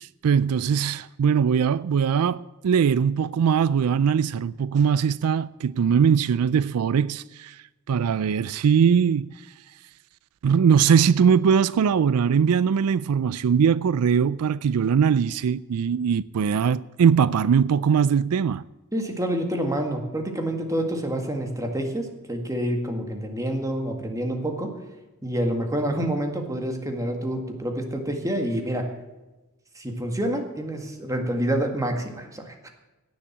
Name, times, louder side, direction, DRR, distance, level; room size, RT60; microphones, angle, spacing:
voice 1, 0.0-7.6 7.9-9.3 10.4-18.6, right 7 dB, 85° right, 0.4 m, -21 dB
voice 2, 18.9-24.7 25.2-28.9 29.8-32.7, right 1 dB, 15° right, 1.9 m, -27 dB
16.5 x 7.3 x 7.3 m
head